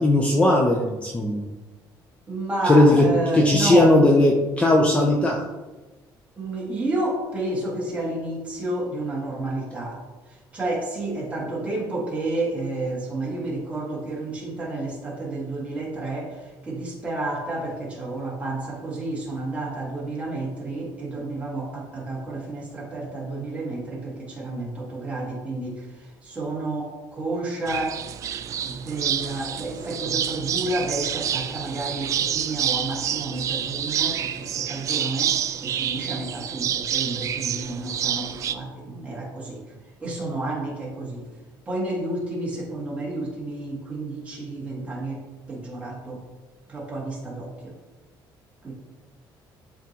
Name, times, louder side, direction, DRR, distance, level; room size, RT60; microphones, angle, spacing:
voice 1, 0.0-1.5 2.6-3.0 3.3-5.4, left 1 dB, 15° left, -1 dB, 0.6 m, -18 dB
voice 2, 2.3-4.0 6.4-10.0 10.3-28.0 28.6-39.6 40.0-41.3 41.7-46.2 46.7-47.8 48.6-48.7, right 2 dB, 15° right, -5 dB, 1.8 m, -30 dB
sound 1, 27.7-38.6, right 9 dB, 40° right, 0.3 m, -28 dB
11.0 x 3.7 x 3.0 m, 1.2 s
cardioid pair, 175°, 9 cm